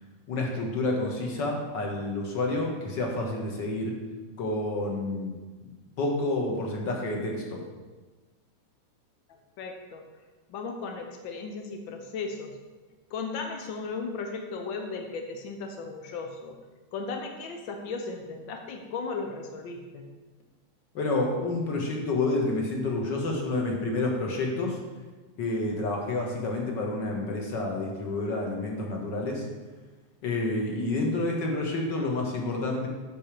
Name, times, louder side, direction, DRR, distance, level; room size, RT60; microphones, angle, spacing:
voice 1, 0.3-4.0 4.4-5.3 6.0-7.6 20.9-24.8 25.4-29.4 30.2-32.9, left 2 dB, 45° left, 0 dB, 1.8 m, -29 dB
voice 2, 9.3-10.0 10.5-12.6 13.1-16.6 16.9-20.1, left 4 dB, 90° left, 3 dB, 1.0 m, -36 dB
8.7 x 5.5 x 7.6 m, 1.3 s
omnidirectional pair, 3.5 m